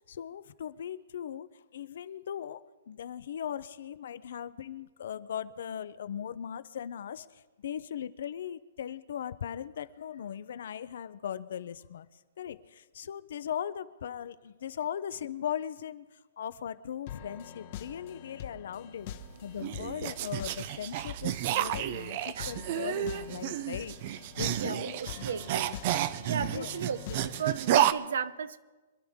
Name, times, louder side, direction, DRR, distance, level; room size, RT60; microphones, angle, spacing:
voice 1, 0.1-1.5 1.7-12.1 12.4-16.0 16.4-19.1 19.4-24.0 24.4-25.2 26.5-26.7, left 9 dB, 60° left, 15 dB, 0.6 m, -38 dB
sound 1, 17.1-27.7, left 9 dB, 35° left, 0.9 m, -45 dB
sound 2, 19.1-27.9, right 12 dB, 35° right, 0.5 m, -31 dB
voice 2, 24.5-25.7 26.2-28.6, right 7 dB, 70° right, 15 dB, 0.8 m, -35 dB
25.5 x 11.5 x 3.6 m, 1.2 s
hypercardioid pair, 175°, 0 cm